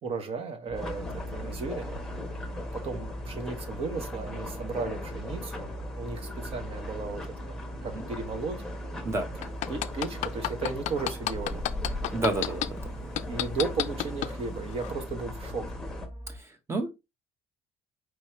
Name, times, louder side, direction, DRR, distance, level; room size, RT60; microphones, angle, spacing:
voice 1, 0.0-1.9 2.7-5.7 6.0-8.6 9.7-11.6 13.3-15.8, right 4 dB, 45° right, 1.2 m, -35 dB
sound 1, 0.7-16.1, left 2 dB, 5° left, 1.1 m, -40 dB
sound 2, 0.7-16.4, right 1 dB, 80° right, 2.3 m, -40 dB
tap hammer small piece of metal gentle hits, 9.4-12.7 13.2-14.3 14.8-14.9, left 14 dB, 60° left, 0.4 m, -29 dB
voice 2, 12.1-12.9 16.3-16.9, right 2 dB, 20° right, 0.9 m, -31 dB
4.7 x 3.0 x 3.0 m
cardioid pair, 110°, 13 cm